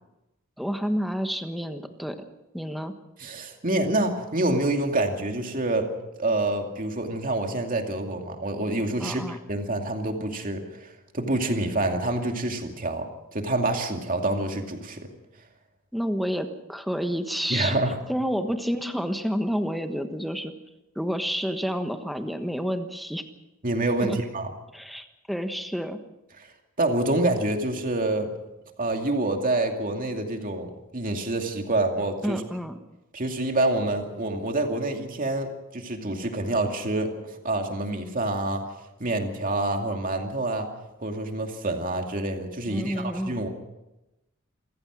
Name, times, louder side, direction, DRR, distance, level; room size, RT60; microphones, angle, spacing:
voice 1, 0.6-2.2 2.5-2.9 9.0-9.4 15.9-17.8 18.1-20.5 20.9-23.2 24.0-24.2 24.7-26.0 32.2-32.8 42.7-43.4, equal, ahead, 7 dB, 1.3 m, -29 dB
voice 2, 3.2-5.9 6.2-15.1 17.5-18.0 23.6-24.5 26.4-26.5 26.8-28.3 28.8-32.4 33.1-38.6 39.0-40.7 41.0-43.5, right 2 dB, 40° right, 3 dB, 2.5 m, -27 dB
27.5 x 15.5 x 6.2 m, 0.99 s
head